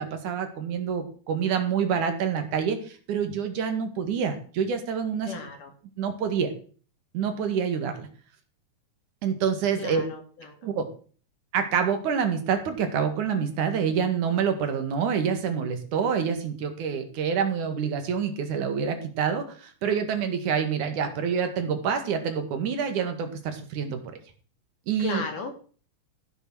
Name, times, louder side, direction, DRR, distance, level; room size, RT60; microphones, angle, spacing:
voice 1, 0.0-5.3 6.0-6.5 7.1-8.1 9.2-10.0 10.6-10.9 11.5-24.0 24.9-25.2, right 7 dB, 75° right, 7 dB, 3.3 m, -27 dB
voice 2, 5.3-5.7 9.8-10.7 25.0-25.5, left 4 dB, 85° left, 4 dB, 4.2 m, -35 dB
14.5 x 7.3 x 6.2 m, 0.42 s
omnidirectional pair, 3.6 m